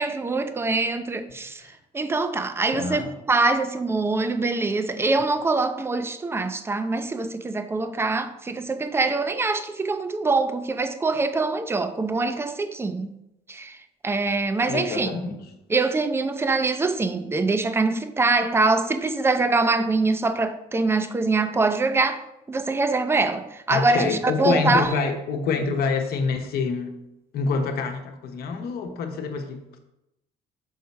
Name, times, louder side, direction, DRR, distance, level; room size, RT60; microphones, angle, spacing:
voice 1, 0.0-1.6 1.9-13.1 13.5-13.8 14.0-15.1 15.7-22.2 22.5-25.0, right 3 dB, 15° right, 0.5 m, -24 dB
voice 2, 2.7-3.1 14.7-15.4 23.7-27.0 27.3-29.8, left 5 dB, 65° left, 1.0 m, -26 dB
6.4 x 4.1 x 4.6 m
cardioid pair, 110°, 17 cm